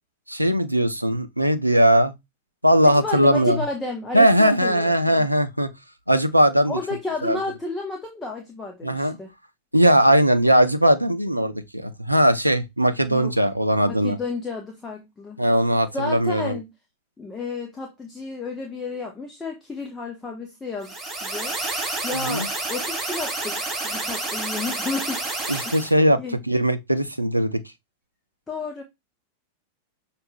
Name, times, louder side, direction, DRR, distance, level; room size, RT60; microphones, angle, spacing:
voice 1, 0.3-2.1 2.6-3.6 4.1-5.7 6.1-6.8 7.2-7.4 8.8-9.2 9.7-14.2 15.4-16.6 22.1-22.5 25.5-26.2 26.5-27.6, equal, 90° right, 0.5 m, -19 dB
voice 2, 2.8-5.3 6.7-9.3 13.1-13.4 13.8-15.4 15.9-16.7 17.2-21.6 22.0-25.2 25.6-25.7 26.2-26.4 28.5-28.8, left 3 dB, 15° left, 0.9 m, -32 dB
sound 1, 20.8-25.9, right 2 dB, 15° right, 2.9 m, -29 dB
6.1 x 2.5 x 3.3 m
figure-of-eight pair, 90°, 0 cm